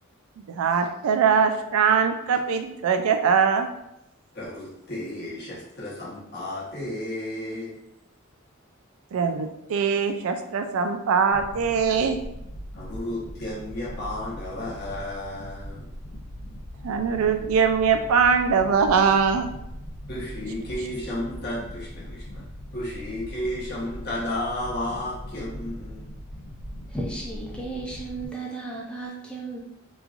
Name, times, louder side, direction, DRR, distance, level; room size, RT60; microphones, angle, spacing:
voice 1, 0.5-3.7 9.1-12.2 16.8-19.5, right 6 dB, 85° right, 7 dB, 0.3 m, -22 dB
voice 2, 4.3-7.8 12.7-15.9 20.1-22.4 22.7-26.1, left 1 dB, 50° left, -5 dB, 0.9 m, -33 dB
sound 1, 11.3-28.3, equal, 75° left, 0.6 m, -40 dB
voice 3, 26.9-29.6, right 2 dB, 5° left, -4 dB, 0.4 m, -34 dB
3.0 x 2.3 x 2.4 m, 0.82 s
head